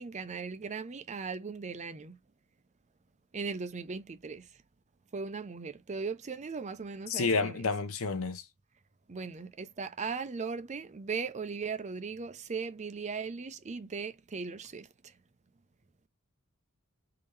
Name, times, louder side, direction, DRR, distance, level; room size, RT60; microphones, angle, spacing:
voice 1, 0.0-2.2 3.3-4.5 5.1-7.7 9.1-15.1, right 5 dB, 30° right, 0.5 m, -38 dB
voice 2, 7.1-8.4, left 4 dB, 70° left, 0.8 m, -30 dB
3.8 x 2.7 x 3.2 m
head